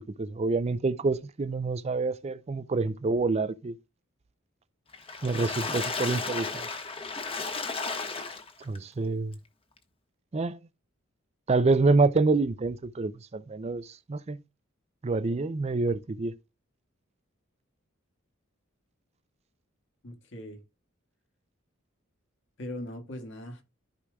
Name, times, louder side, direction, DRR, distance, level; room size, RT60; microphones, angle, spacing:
voice 1, 0.0-3.7 5.2-6.7 8.6-9.4 10.3-10.6 11.5-14.4 15.0-16.3, right 3 dB, 30° right, 0.4 m, -27 dB
Water / Splash splatter, 4.9-8.8 9.3-9.4 9.8-9.9, left 4 dB, 25° left, 1.2 m, -34 dB
voice 2, 20.0-20.6 22.6-23.6, left 1 dB, 60° left, 1.8 m, -40 dB
14.0 x 4.9 x 2.3 m
head